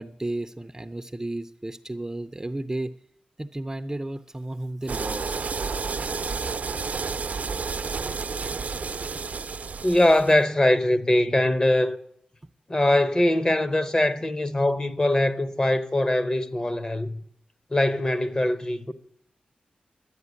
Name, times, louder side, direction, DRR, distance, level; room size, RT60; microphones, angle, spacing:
voice 1, 0.0-2.9 3.4-5.4, right 1 dB, 20° right, 0.6 m, -33 dB
sound 1, 4.9-10.4, right 5 dB, 60° right, 0.6 m, -31 dB
voice 2, 9.8-12.0 12.7-17.2 17.7-18.9, left 1 dB, 25° left, 1.0 m, -22 dB
11.5 x 8.0 x 9.6 m
cardioid pair, 75°, 3 cm